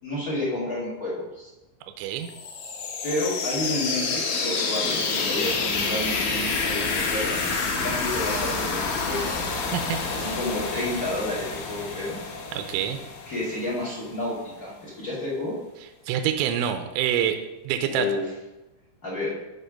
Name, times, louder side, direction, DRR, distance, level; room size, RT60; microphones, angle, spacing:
voice 1, 0.0-1.5 3.0-7.4 7.7-9.4 10.1-12.2 13.3-15.5 17.9-18.2 19.0-19.3, left 1 dB, 30° left, -7 dB, 1.8 m, -30 dB
voice 2, 2.0-2.3 9.7-10.0 12.5-13.0 16.1-17.4 17.7-18.1, right 9 dB, 80° right, 6 dB, 2.9 m, -26 dB
sound 1, 2.2-13.9, left 4 dB, 80° left, 3.8 m, -28 dB
12.5 x 4.2 x 5.1 m, 1.0 s
omnidirectional pair, 5.5 m